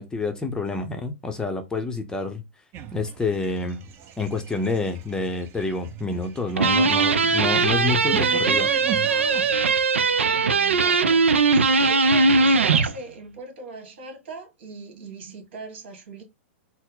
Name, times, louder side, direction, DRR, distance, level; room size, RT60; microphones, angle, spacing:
voice 1, 0.0-2.4 2.9-3.8 4.2-8.7, left 3 dB, 10° left, 0.6 m, -28 dB
sound 1, 2.7-9.7, right 10 dB, 35° right, 0.7 m, -37 dB
sound 2, 6.6-12.9, right 4 dB, 85° right, 0.5 m, -20 dB
voice 2, 9.9-16.2, right 3 dB, 65° right, 1.6 m, -41 dB
4.2 x 2.0 x 3.8 m
hypercardioid pair, 115°, 7 cm